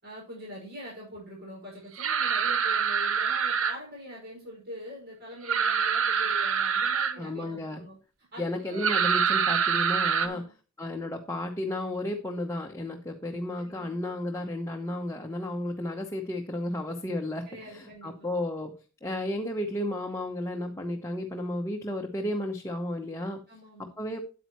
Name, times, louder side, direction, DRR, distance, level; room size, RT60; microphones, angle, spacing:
voice 1, 0.0-8.0 8.3-9.0 10.2-10.5 13.6-13.9 17.5-18.3 23.5-23.9, equal, 50° right, -4 dB, 5.5 m, -44 dB
sound 1, 2.0-3.8 5.5-7.2 8.8-10.3, right 6 dB, 75° right, 0.9 m, -25 dB
voice 2, 7.2-7.8 8.4-10.4 10.8-18.7 19.0-23.4 23.8-24.2, left 1 dB, 15° left, 2 dB, 0.9 m, -33 dB
9.3 x 8.8 x 3.0 m, 0.33 s
head